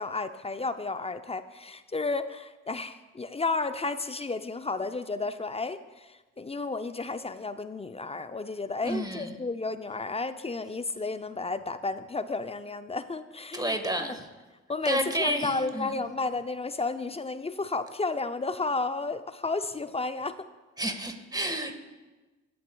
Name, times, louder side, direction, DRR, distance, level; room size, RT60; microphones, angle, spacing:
voice 1, 0.0-14.2 14.7-20.4, left 3 dB, 20° left, 11 dB, 0.5 m, -32 dB
voice 2, 8.8-9.4 13.5-14.3 14.8-16.0 20.8-21.7, right 1 dB, 10° right, 6 dB, 1.6 m, -30 dB
19.5 x 7.5 x 2.3 m, 1.2 s
hypercardioid pair, 55°, 35 cm